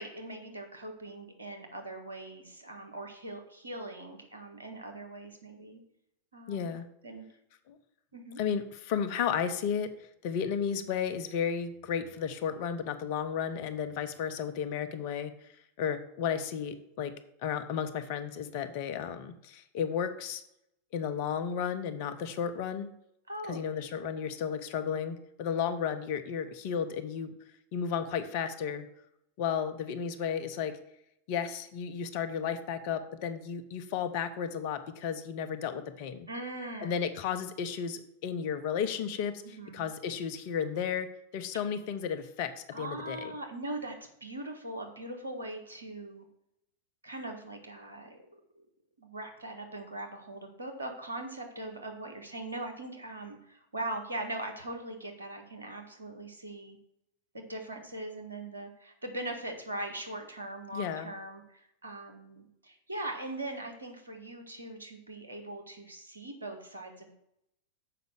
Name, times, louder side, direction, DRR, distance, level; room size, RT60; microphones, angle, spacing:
voice 1, 0.0-5.8 6.3-6.7 7.0-7.2 8.1-8.4 23.3-23.6 36.3-36.9 39.6-39.9 42.7-46.2 47.0-48.4 49.0-56.8 57.3-67.1, right 2 dB, 80° right, 3 dB, 1.5 m, -41 dB
voice 2, 6.5-6.9 7.7-7.8 8.4-15.3 15.8-17.1 17.4-20.4 20.9-22.9 23.5-27.3 27.7-28.9 29.4-30.8 31.3-36.3 36.8-39.4 39.7-41.1 41.3-43.3 60.7-61.1, left 7 dB, 45° left, 9 dB, 0.8 m, -33 dB
6.8 x 5.3 x 6.2 m, 0.78 s
figure-of-eight pair, 90°, 0 cm